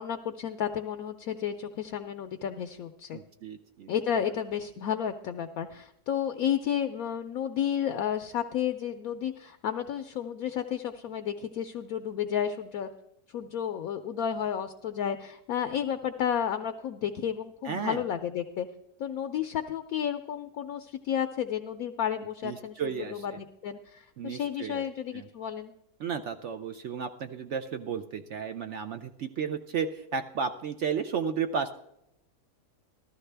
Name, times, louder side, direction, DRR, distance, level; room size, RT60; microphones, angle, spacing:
voice 1, 0.0-3.2 3.9-12.9 13.3-18.7 19.0-22.8 23.1-25.7, left 9 dB, 70° left, 8 dB, 0.9 m, -32 dB
voice 2, 3.1-3.9 17.6-18.0 22.4-23.4 24.2-24.8 25.1-25.3 26.0-31.7, right 6 dB, 70° right, 8 dB, 0.6 m, -33 dB
14.5 x 13.0 x 3.3 m, 0.81 s
omnidirectional pair, 1.8 m